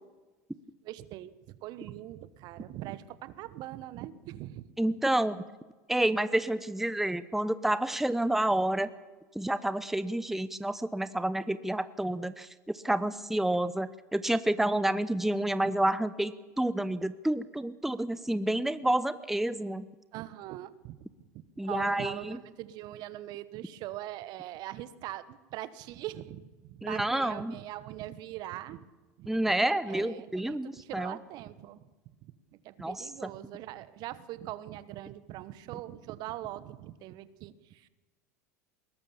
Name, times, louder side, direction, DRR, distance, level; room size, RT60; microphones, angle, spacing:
voice 1, 0.8-4.6 20.1-21.1 21.6-28.8 29.2-29.6 29.9-31.8 32.2-32.3 32.6-37.9, right 14 dB, 55° right, 15 dB, 1.2 m, -42 dB
voice 2, 4.8-5.4 5.9-8.9 9.3-12.5 12.8-19.8 21.6-22.4 26.8-27.5 29.3-31.1 32.8-33.1, right 1 dB, 5° right, 14 dB, 0.9 m, -29 dB
21.0 x 18.5 x 7.2 m, 1.3 s
hypercardioid pair, 85°, 9 cm